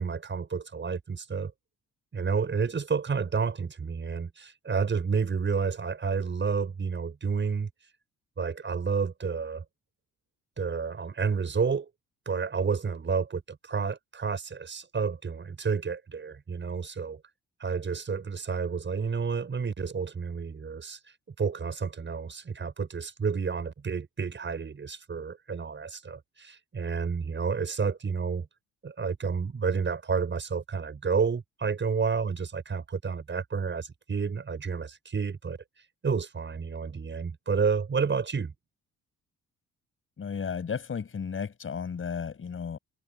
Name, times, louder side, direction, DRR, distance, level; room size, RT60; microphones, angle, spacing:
voice 1, 0.0-1.5 2.1-7.7 8.4-9.6 10.6-11.9 12.3-17.2 17.6-21.0 21.4-28.5 28.8-35.6 36.0-38.5, right 5 dB, 40° right, 7.3 m, -30 dB
voice 2, 40.2-42.8, left 6 dB, 45° left, 6.5 m, -34 dB
cardioid pair, 90°, 30 cm